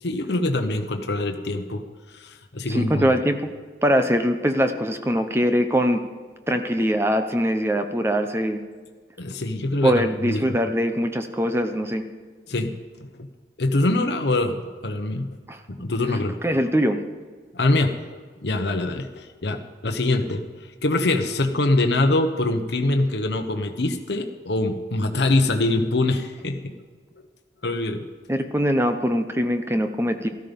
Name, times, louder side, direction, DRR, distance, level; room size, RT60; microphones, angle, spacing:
voice 1, 0.0-3.1 9.2-10.6 12.5-12.7 13.2-13.3 13.6-15.3 15.7-16.4 17.5-20.4 20.8-26.8 27.6-28.0, left 2 dB, 75° left, 5 dB, 1.0 m, -24 dB
voice 2, 2.7-3.4 3.8-6.0 6.5-8.6 9.8-12.0 15.5-15.6 16.4-17.0 28.3-30.3, equal, 15° right, 7 dB, 0.8 m, -22 dB
13.5 x 13.0 x 5.3 m, 1.5 s
head